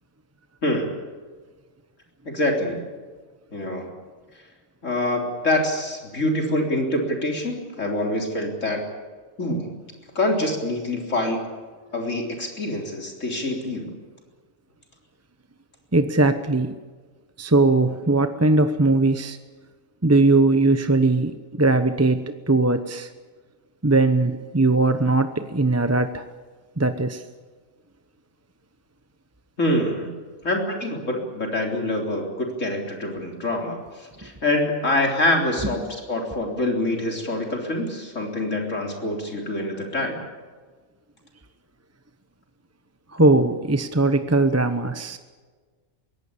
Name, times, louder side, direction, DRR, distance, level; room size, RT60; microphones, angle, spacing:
voice 1, 0.6-0.9 2.2-2.8 3.5-3.9 4.8-8.8 9.4-9.7 10.1-11.4 11.9-13.9 29.6-30.1 30.4-35.8 36.1-40.2, left 1 dB, 75° left, 1 dB, 4.1 m, -25 dB
voice 2, 15.9-16.8 17.4-19.4 20.0-23.1 23.8-26.2 26.8-27.2 34.2-34.3 43.1-45.2, right 2 dB, 15° right, 9 dB, 0.8 m, -20 dB
23.5 x 17.5 x 8.6 m, 1.4 s
omnidirectional pair, 1.3 m